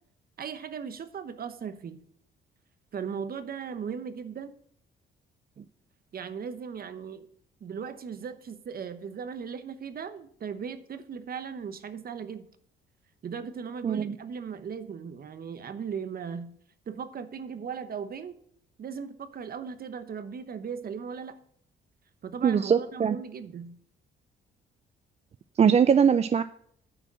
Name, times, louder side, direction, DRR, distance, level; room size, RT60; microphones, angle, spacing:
voice 1, 0.4-2.0 2.9-4.5 6.1-7.3 7.6-12.5 13.2-16.5 16.9-18.3 18.8-21.4 22.2-23.8, right 6 dB, 50° right, 12 dB, 1.0 m, -37 dB
voice 2, 13.8-14.2 22.4-23.2 25.6-26.4, right 7 dB, 35° right, 12 dB, 0.4 m, -21 dB
9.6 x 4.9 x 7.5 m, 0.63 s
cardioid pair, 90°, 20 cm